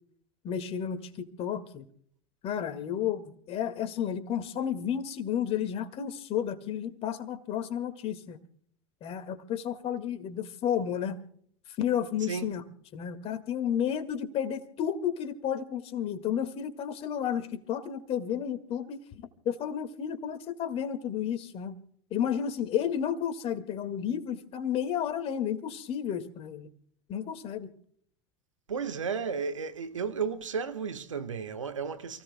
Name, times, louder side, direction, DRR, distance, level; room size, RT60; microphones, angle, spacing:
voice 1, 0.4-1.8 2.4-8.4 9.0-11.2 11.8-12.6 12.9-21.8 22.1-26.7 27.1-27.7, left 9 dB, 40° left, 1.9 m, -32 dB
voice 2, 28.7-32.2, right 6 dB, 85° right, 1.3 m, -33 dB
28.5 x 16.5 x 2.2 m
hypercardioid pair, 90°, 16 cm